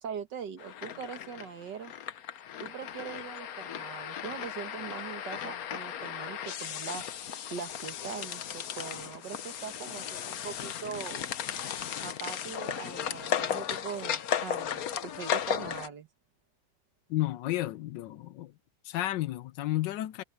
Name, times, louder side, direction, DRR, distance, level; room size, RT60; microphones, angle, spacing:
voice 1, 0.0-1.9 2.6-7.0 7.5-11.2 12.0-16.1, right 7 dB, 70° right, 2.2 m, -41 dB
sound 1, 0.6-15.9, left 9 dB, 60° left, 1.2 m, -36 dB
voice 2, 17.1-18.5 18.8-20.2, left 15 dB, 80° left, 1.3 m, -32 dB
omnidirectional pair, 2.0 m